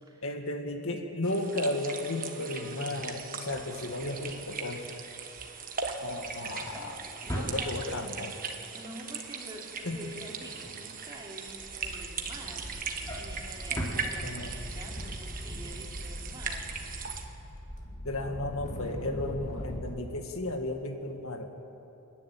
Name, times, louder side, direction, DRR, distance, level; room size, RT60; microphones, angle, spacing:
voice 1, 0.2-4.9 6.0-7.1 7.3-8.3 9.9-10.1 14.2-14.6 18.0-21.5, left 2 dB, 65° left, 4 dB, 2.0 m, -34 dB
sound 1, 1.2-17.2, right 5 dB, 40° right, 1.4 m, -39 dB
Drawer open or close, 3.2-8.2 8.6-8.9 9.2-11.4 11.8-14.8 15.2-15.4 15.6-15.7, equal, 15° left, 3.0 m, -42 dB
voice 2, 6.7-7.8 8.7-12.6 13.1-16.7, right 1 dB, 20° right, -2 dB, 2.9 m, -47 dB
sound 2, 11.2-11.3 11.5-19.9, equal, 35° left, 2.3 m, -41 dB
28.5 x 11.0 x 9.1 m, 3.0 s
head